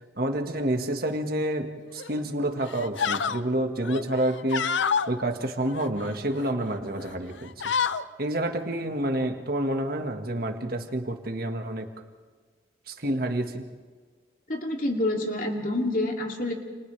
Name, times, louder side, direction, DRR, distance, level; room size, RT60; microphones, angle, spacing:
voice 1, 0.2-4.7 5.1-7.7 8.2-11.9 12.9-13.7, right 1 dB, 50° right, 4 dB, 1.7 m, -28 dB
sound 1, 2.0-2.2 2.7-3.4 3.8-5.1 5.6-6.5 6.9-7.1 7.4-8.0, left 6 dB, 70° left, 0.7 m, -28 dB
voice 2, 14.5-16.5, left 1 dB, 45° left, 0 dB, 2.7 m, -27 dB
29.5 x 29.5 x 3.4 m, 1.5 s
head